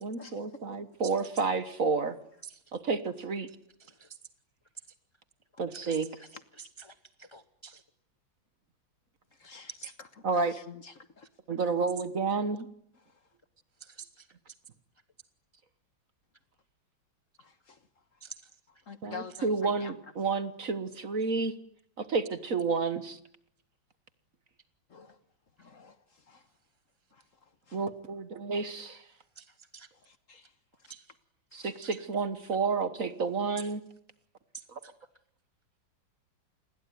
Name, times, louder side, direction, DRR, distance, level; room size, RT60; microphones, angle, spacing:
voice 1, 0.0-2.2 2.7-3.5 5.6-6.1 10.2-10.5 11.5-12.7 19.0-21.5 22.0-23.2 27.7-29.0 31.5-33.8 34.7-34.8, right 4 dB, 45° right, 12 dB, 1.6 m, -30 dB
voice 2, 3.5-4.2 5.7-6.3 6.5-7.8 9.7-10.0 13.8-14.3 18.2-18.4 29.3-29.9 30.9-31.1 31.8-32.0 33.6-33.7 34.5-34.9, right 7 dB, 25° left, 11 dB, 0.7 m, -48 dB
voice 3, 9.4-9.9 10.3-11.1 17.4-17.8 18.9-19.9 24.9-25.2 25.6-26.0 26.3-26.4 27.1-27.2 27.7-27.8 30.0-30.5 31.5-31.7, left 5 dB, 45° left, 11 dB, 1.5 m, -47 dB
29.0 x 21.0 x 9.5 m, 0.71 s
omnidirectional pair, 2.2 m